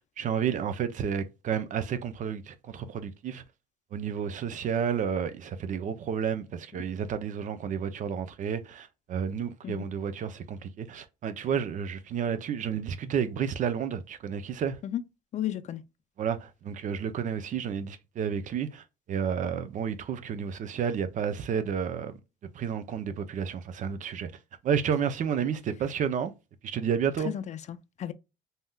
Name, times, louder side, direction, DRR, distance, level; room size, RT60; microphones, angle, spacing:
voice 1, 0.2-3.4 3.9-14.8 16.2-22.1 22.5-24.3 24.6-26.3 26.6-27.3, right 7 dB, 50° right, 0.5 m, -31 dB
voice 2, 15.3-15.8 27.2-28.1, left 11 dB, 45° left, 0.4 m, -33 dB
3.4 x 2.7 x 2.3 m
cardioid pair, 110°, 17 cm